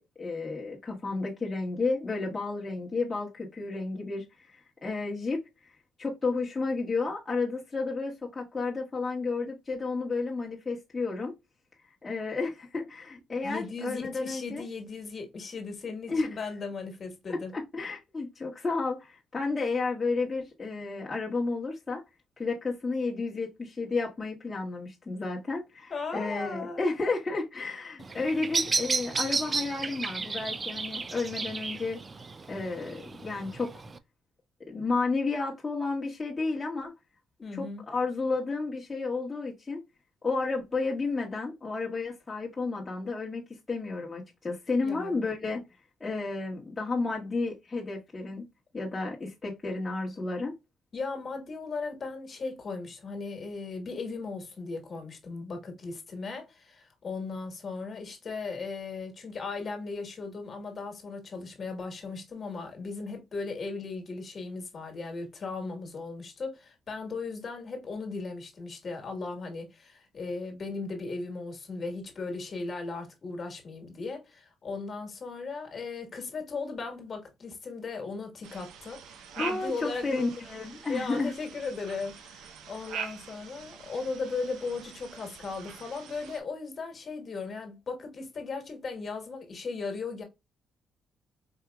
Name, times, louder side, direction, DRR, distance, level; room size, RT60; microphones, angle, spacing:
voice 1, 0.0-5.4 6.0-11.3 12.0-14.6 16.1-16.3 17.3-22.0 22.4-32.0 32.5-33.7 34.7-36.9 37.5-39.8 40.2-43.4 43.7-45.6 46.0-48.4 48.7-50.5 79.4-81.3, left 3 dB, 25° left, 1.2 m, -32 dB
voice 2, 13.4-17.5 25.9-26.8 37.4-37.8 44.8-45.2 50.9-80.4 80.9-90.2, left 4 dB, 45° left, 1.5 m, -37 dB
Bird vocalization bird call bird song, 28.0-34.0, right 4 dB, 35° right, 0.4 m, -33 dB
sound 1, 78.4-86.4, right 7 dB, 85° right, 0.7 m, -44 dB
4.8 x 2.8 x 2.3 m
cardioid pair, 90°, 0 cm